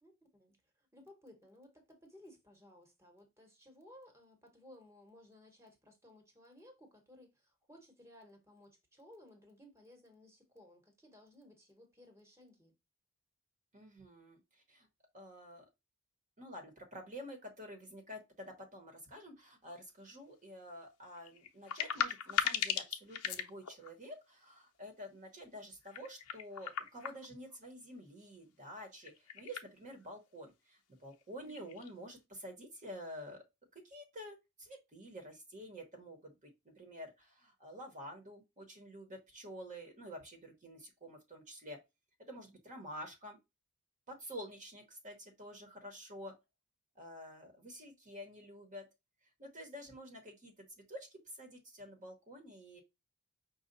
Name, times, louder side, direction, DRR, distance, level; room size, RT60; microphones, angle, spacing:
voice 1, 0.0-12.7 31.4-31.7, left 1 dB, 10° right, 1.1 m, -59 dB
voice 2, 13.7-14.9 15.1-15.6 16.4-33.4 33.7-36.5 36.8-41.8 42.3-43.4 44.1-46.3 46.9-48.8 49.4-52.8, equal, 35° right, 1.0 m, -49 dB
sound 1, 19.7-19.8 21.2-23.9 25.8-27.5 29.0-29.7 30.0-30.1 31.1-31.2 31.5-31.9, left 8 dB, 80° left, 0.7 m, -38 dB
5.3 x 2.3 x 3.9 m
head